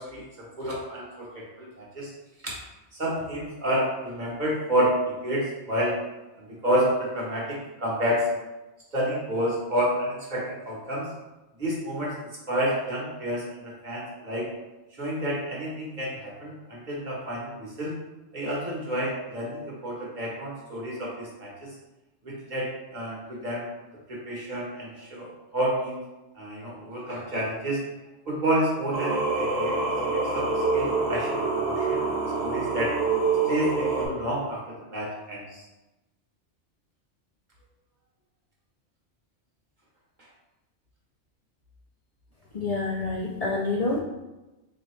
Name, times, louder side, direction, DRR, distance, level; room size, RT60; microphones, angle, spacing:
voice 1, 0.1-2.1 2.4-2.5 3.0-4.9 5.2-6.0 6.4-8.2 8.9-11.1 11.6-12.1 12.5-14.5 15.0-17.9 18.3-21.7 22.2-23.6 24.1-26.0 26.4-27.8 28.3-29.8 30.0-32.0 32.4-32.9 33.5-35.6, right 1 dB, 40° right, -5 dB, 1.2 m, -29 dB
Singing, 28.9-34.1, right 4 dB, 65° right, 0.9 m, -26 dB
voice 2, 42.5-44.0, left 3 dB, 80° left, -3 dB, 0.3 m, -27 dB
4.0 x 2.9 x 3.1 m, 1.0 s
omnidirectional pair, 1.2 m